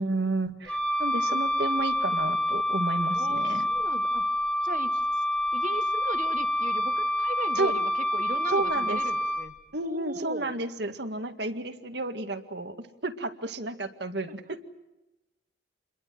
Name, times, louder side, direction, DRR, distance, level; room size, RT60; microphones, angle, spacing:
voice 1, 0.0-3.7 7.6-7.7 8.5-9.0 9.7-14.6, right 2 dB, 60° right, 8 dB, 2.0 m, -31 dB
Wind instrument woodwind instrument, 0.7-9.5, left 1 dB, 5° left, 2.7 m, -27 dB
voice 2, 3.1-4.2 4.6-5.0 5.5-9.5 9.8-10.5, right 2 dB, 45° right, 10 dB, 1.5 m, -38 dB
28.5 x 22.5 x 7.7 m, 1.0 s
head